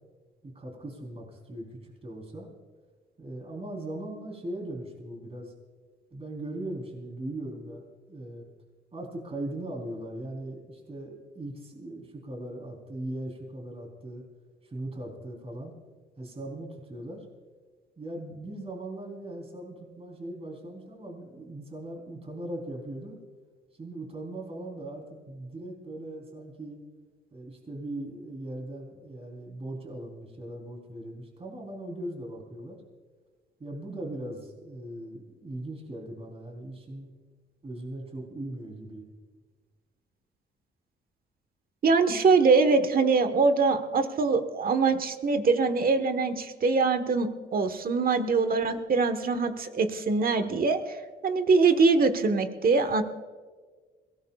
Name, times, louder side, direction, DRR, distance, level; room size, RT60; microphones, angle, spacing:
voice 1, 0.4-2.5 3.2-5.5 6.1-8.5 8.9-14.2 14.6-15.7 16.2-17.3 18.0-23.2 23.7-26.8 27.3-32.8 33.6-37.1 37.6-39.1, right 1 dB, 30° right, 0 dB, 3.9 m, -39 dB
voice 2, 41.8-51.0 51.2-53.0, right 4 dB, 45° right, 9 dB, 1.4 m, -23 dB
22.0 x 18.0 x 2.4 m, 1.5 s
cardioid pair, 90°, 20 cm